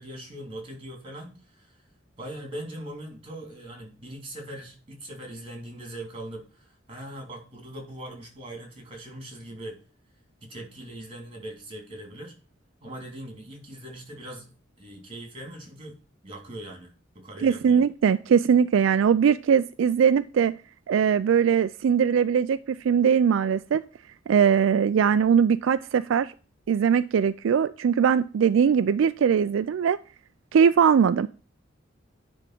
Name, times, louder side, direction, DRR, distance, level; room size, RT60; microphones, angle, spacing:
voice 1, 0.0-1.8 2.2-9.8 10.4-12.3 12.8-14.5 14.8-15.9 16.2-17.8, right 1 dB, 30° right, 3.1 m, -41 dB
voice 2, 17.4-20.5 20.9-23.8 24.3-26.3 26.7-30.0 30.5-31.3, right 7 dB, 75° right, 0.3 m, -21 dB
10.5 x 3.6 x 5.9 m
head